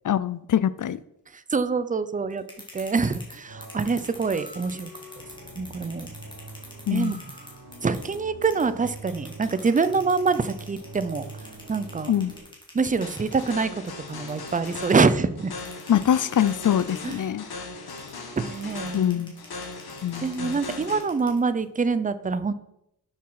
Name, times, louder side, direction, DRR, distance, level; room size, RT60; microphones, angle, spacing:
voice 1, 0.0-1.0 6.9-7.1 12.1-12.3 15.9-17.4 18.9-19.3 20.0-20.6, left 10 dB, 55° left, 0.5 m, -23 dB
voice 2, 1.5-2.4 2.7-4.9 5.6-6.1 6.9-7.2 7.8-11.2 11.7-12.1 12.7-13.8 14.1-15.5 17.0-17.2 18.4-19.0 20.2-22.5, right 4 dB, 20° right, 0.5 m, -25 dB
sound 1, 2.3-8.2 8.4-15.0 15.6-17.2 17.9-21.6, left 1 dB, 10° left, 2.5 m, -46 dB
sound 2, 3.4-12.4, right 2 dB, 65° right, 4.5 m, -44 dB
sound 3, 13.0-21.0, left 3 dB, 70° left, 1.9 m, -38 dB
12.0 x 7.1 x 4.8 m
wide cardioid pair, 170°, 38 cm